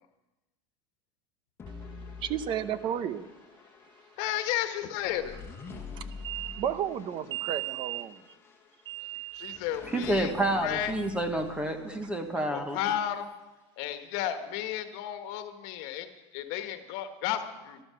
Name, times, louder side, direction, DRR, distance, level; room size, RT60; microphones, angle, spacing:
sound 1, 1.6-12.9, left 4 dB, 15° left, 1.4 m, -46 dB
voice 1, 2.2-3.3 5.9-8.3 8.9-9.6 12.4-12.5, right 10 dB, 30° right, 14 dB, 0.8 m, -33 dB
voice 2, 4.2-5.4 9.3-10.9 12.5-13.3 13.8-17.8, left 11 dB, 55° left, 8 dB, 1.5 m, -33 dB
voice 3, 9.9-12.8, right 1 dB, 5° right, 6 dB, 1.1 m, -29 dB
12.5 x 12.0 x 6.9 m, 1.1 s
supercardioid pair, 160°, 15 cm